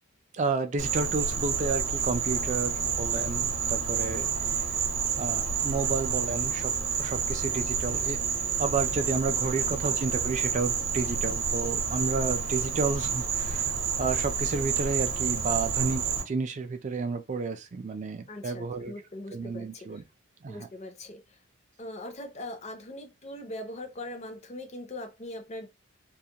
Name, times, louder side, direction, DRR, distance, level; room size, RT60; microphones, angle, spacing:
voice 1, 0.3-4.3 4.7-4.8 5.2-8.2 8.6-18.9 19.3-20.0 20.4-20.7, right 4 dB, 35° right, 0.3 m, -31 dB
Insect, 0.8-16.2, right 6 dB, 65° right, 0.7 m, -29 dB
voice 2, 9.4-9.8 18.3-20.0 20.5-21.4 21.8-25.7, left 1 dB, 30° left, 0.5 m, -41 dB
2.3 x 2.1 x 2.8 m
head